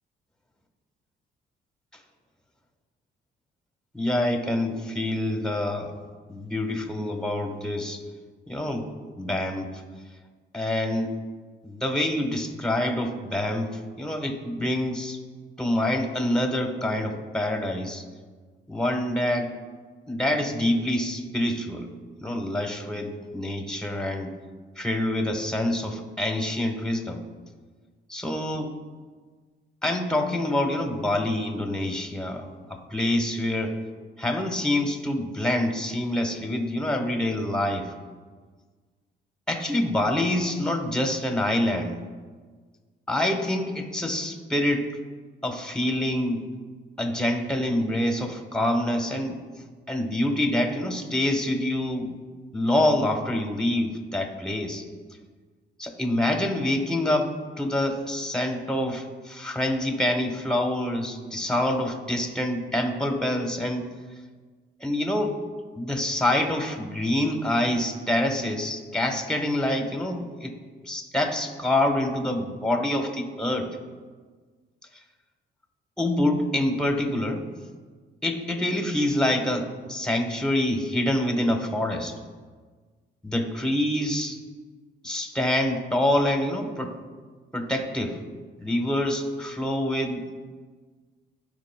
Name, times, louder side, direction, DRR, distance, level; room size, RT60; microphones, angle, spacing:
voice 1, 3.9-5.9 6.3-8.0 8.5-8.9 9.2-9.7 10.5-11.1 11.6-15.2 15.6-18.0 18.7-19.5 20.1-21.9 22.2-24.3 24.8-27.2 28.1-28.7 29.8-33.8 34.2-37.9 39.5-42.0 43.1-44.9 45.4-46.4 47.0-49.4 49.9-52.1 52.5-54.8 55.8-63.9 64.8-65.4 65.7-70.5 70.9-73.7 76.0-77.4 78.2-82.1 83.2-84.4 85.0-86.9 87.5-88.2 88.6-90.2, left 1 dB, 5° left, 4 dB, 1.1 m, -26 dB
15.5 x 5.1 x 2.2 m, 1.5 s
cardioid pair, 90°, 20 cm